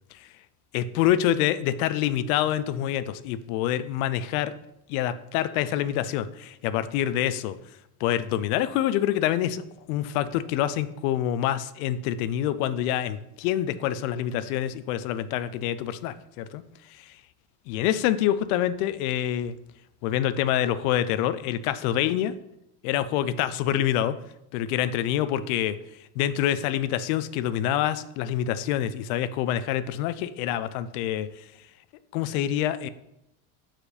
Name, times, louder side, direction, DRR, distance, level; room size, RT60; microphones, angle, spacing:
voice 1, 0.7-4.5 4.9-7.6 8.0-16.6 17.0-17.1 17.7-19.6 20.0-22.3 22.8-24.1 24.5-25.8 26.2-31.4 32.1-32.9, left 11 dB, 65° left, 14 dB, 0.5 m, -26 dB
4.8 x 4.4 x 5.0 m, 0.84 s
cardioid pair, 160°, 47 cm